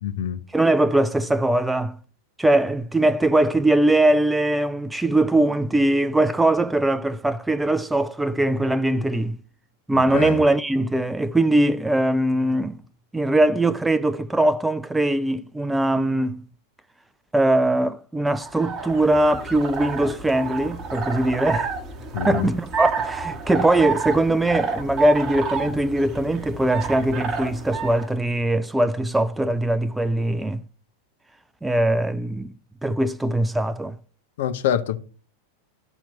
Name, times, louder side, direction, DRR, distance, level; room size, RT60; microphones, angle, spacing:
voice 1, 0.0-0.4 9.9-10.4 22.1-22.5 34.4-35.0, left 9 dB, 55° left, 0.6 m, -25 dB
voice 2, 0.5-2.0 2.4-9.4 9.9-12.8 13.1-16.4 17.3-21.7 22.3-30.6 31.6-32.5 32.8-34.0, right 1 dB, 5° right, 0.3 m, -21 dB
sound 1, 18.4-28.1, right 5 dB, 30° right, 0.9 m, -29 dB
12.5 x 4.3 x 3.0 m
figure-of-eight pair, 90°, 0 cm